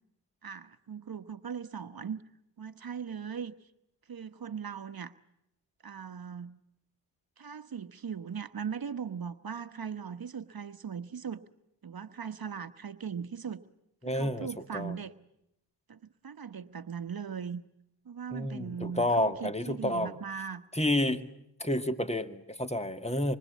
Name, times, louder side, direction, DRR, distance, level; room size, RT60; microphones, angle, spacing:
voice 1, 0.4-2.2 2.6-3.5 4.1-5.1 5.8-6.6 7.4-11.4 11.8-13.6 14.0-15.1 15.9-17.6 18.0-20.6, right 7 dB, 55° right, 10 dB, 1.2 m, -39 dB
voice 2, 14.0-14.5 14.7-14.9 18.3-20.1 20.7-21.2 21.6-23.4, left 1 dB, 15° left, 9 dB, 2.2 m, -30 dB
26.0 x 24.5 x 8.4 m, 0.82 s
supercardioid pair, 45°, 43 cm